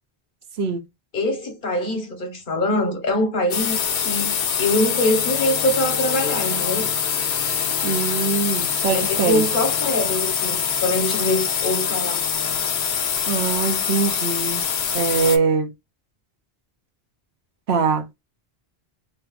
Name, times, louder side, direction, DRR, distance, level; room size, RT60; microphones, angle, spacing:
voice 1, 1.1-6.9 8.9-12.3, left 1 dB, 55° left, 1.1 m, -24 dB
sound 1, 3.5-15.4, left 7 dB, 85° left, 0.9 m, -24 dB
voice 2, 7.8-9.5 13.3-14.6 14.9-15.7 17.7-18.1, right 5 dB, 85° right, 1.0 m, -22 dB
3.3 x 2.3 x 2.3 m
omnidirectional pair, 1.1 m